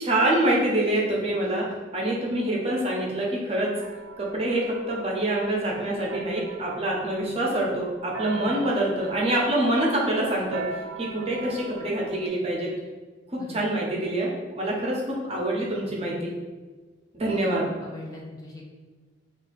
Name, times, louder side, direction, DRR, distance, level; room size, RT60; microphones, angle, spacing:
voice 1, 0.0-1.6 1.9-3.7 4.2-10.6 11.0-12.7 13.5-16.3 17.1-17.7, right 1 dB, 30° right, -3 dB, 0.7 m, -25 dB
sound 1, 3.8-12.3, right 4 dB, 85° right, 0.3 m, -41 dB
voice 2, 17.8-18.6, left 2 dB, 20° left, -2 dB, 0.3 m, -41 dB
2.7 x 2.4 x 4.0 m, 1.3 s
head